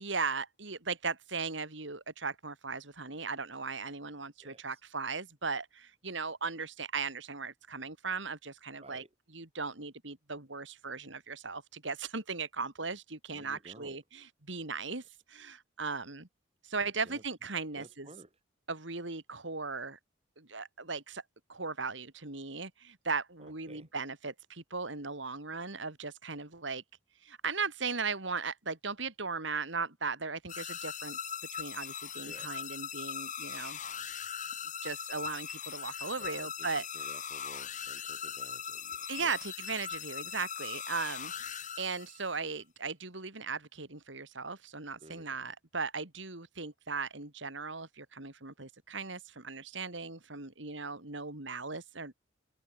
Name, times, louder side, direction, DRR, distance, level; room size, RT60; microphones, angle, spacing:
voice 1, 0.0-9.0 9.3-16.3 16.6-18.1 18.7-20.0 20.4-21.2 21.5-26.8 27.2-31.2 31.5-33.8 34.8-36.9 39.1-52.1, right 4 dB, 70° right, 3.2 m, -38 dB
voice 2, 8.8-9.1 13.3-14.0 16.8-17.2 17.7-18.3 23.4-23.9 32.2-32.6 36.2-39.3 45.0-45.3, right 1 dB, 30° right, 5.5 m, -53 dB
sound 1, 30.5-42.4, left 8 dB, 40° left, 6.4 m, -40 dB
head